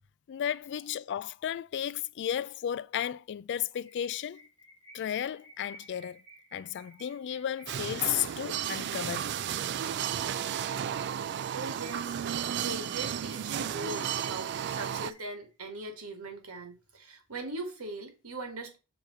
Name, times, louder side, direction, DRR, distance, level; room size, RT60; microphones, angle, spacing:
voice 1, 0.3-4.4 4.9-6.2 6.5-9.3, left 10 dB, 55° left, 0.3 m, -34 dB
sound 1, 3.6-11.6 11.9-12.0 12.3-12.4 12.6-15.8, right 1 dB, 25° right, 2.6 m, -56 dB
sound 2, 7.7-15.1, right 9 dB, 50° right, 0.3 m, -33 dB
voice 2, 11.5-18.8, right 2 dB, 80° right, 1.8 m, -40 dB
6.9 x 3.0 x 5.3 m
head